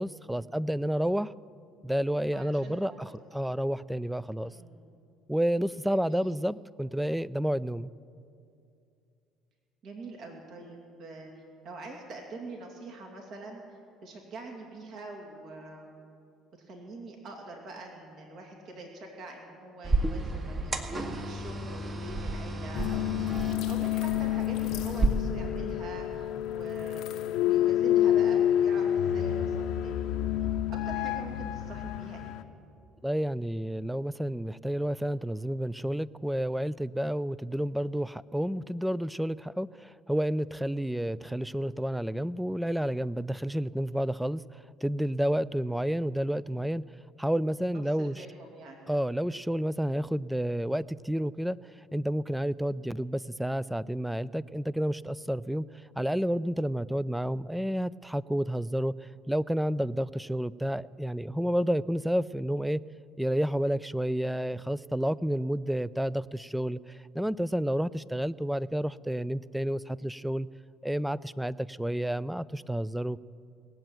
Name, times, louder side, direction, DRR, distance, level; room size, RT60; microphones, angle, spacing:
voice 1, 0.0-1.3 1.8-4.5 5.3-7.9 33.0-46.8 47.2-48.2 48.9-51.6 51.9-55.7 56.0-62.8 63.2-70.5 70.8-73.2, equal, 5° right, 19 dB, 0.4 m, -30 dB
voice 2, 2.3-3.1 4.4-4.8 5.8-6.3 9.8-11.3 11.6-15.9 16.6-23.3 23.7-27.0 27.4-30.1 30.7-32.4 48.0-48.8, right 2 dB, 60° right, 1 dB, 2.6 m, -44 dB
sound 1, 19.8-25.1, right 3 dB, 35° right, 1.6 m, -32 dB
sound 2, 22.7-32.4, left 11 dB, 70° left, 0.7 m, -28 dB
19.5 x 7.8 x 9.1 m, 2.5 s
supercardioid pair, 80°, 0 cm